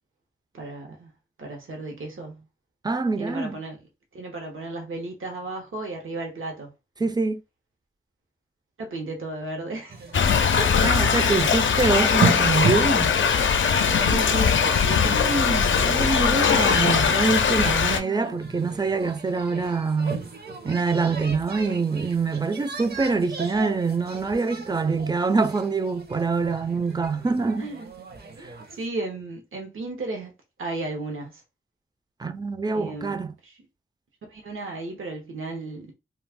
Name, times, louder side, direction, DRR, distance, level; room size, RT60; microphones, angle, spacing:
voice 1, 0.5-1.1 1.4-2.5 3.2-3.8 4.1-6.7 8.8-10.1 10.6-10.7 13.7-14.6 14.8-15.7 26.8-26.9 27.6-27.9 28.4-30.3 30.6-31.4 32.7-33.5 34.3-35.9, right 2 dB, 80° right, 0.9 m, -34 dB
voice 2, 2.8-3.6 7.0-7.4 10.8-13.1 15.0-20.2 20.6-27.7 28.4-28.5 32.2-33.3, right 4 dB, 20° right, 0.4 m, -25 dB
sound 1, 9.9-28.9, right 4 dB, 50° right, 0.7 m, -34 dB
Thunder / Rain, 10.1-18.0, left 6 dB, 70° left, 0.4 m, -21 dB
2.4 x 2.3 x 3.5 m
cardioid pair, 60°, 20 cm